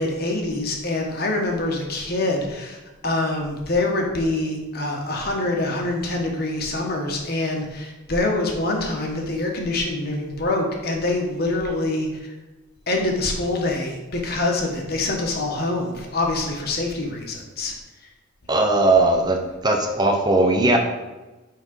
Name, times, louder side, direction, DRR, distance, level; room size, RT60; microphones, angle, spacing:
voice 1, 0.0-2.8 3.0-12.3 12.9-17.7, left 2 dB, 50° left, 1 dB, 1.3 m, -25 dB
voice 2, 18.5-20.8, right 2 dB, 20° right, 3 dB, 0.7 m, -18 dB
6.2 x 4.9 x 5.4 m, 1.1 s
head